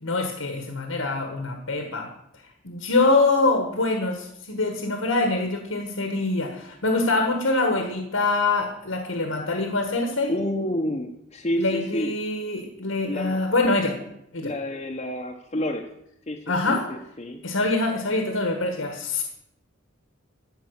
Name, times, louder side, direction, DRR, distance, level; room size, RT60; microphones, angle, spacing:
voice 1, 0.0-2.1 2.6-10.3 11.6-14.0 14.3-14.5 16.5-16.8 17.4-19.2, left 2 dB, 85° left, 4 dB, 1.6 m, -24 dB
voice 2, 10.3-12.2 13.0-13.4 14.4-15.9 16.3-17.4, equal, 30° left, -1 dB, 0.9 m, -29 dB
14.0 x 5.4 x 8.1 m, 0.78 s
head